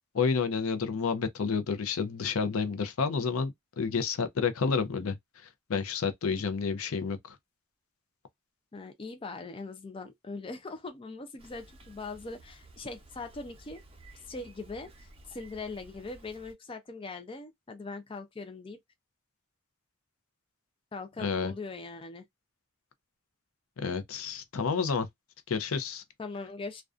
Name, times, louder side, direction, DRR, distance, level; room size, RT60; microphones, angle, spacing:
voice 1, 0.1-5.2 5.7-7.4 21.2-21.5 23.8-25.1 25.5-26.0, left 5 dB, 80° left, 0.5 m, -30 dB
voice 2, 8.7-13.8 14.3-18.8 20.9-22.3 26.2-26.8, left 3 dB, 25° left, 0.4 m, -41 dB
Bicycle, 11.4-16.5, right 2 dB, 25° right, 0.6 m, -54 dB
2.4 x 2.2 x 2.4 m
head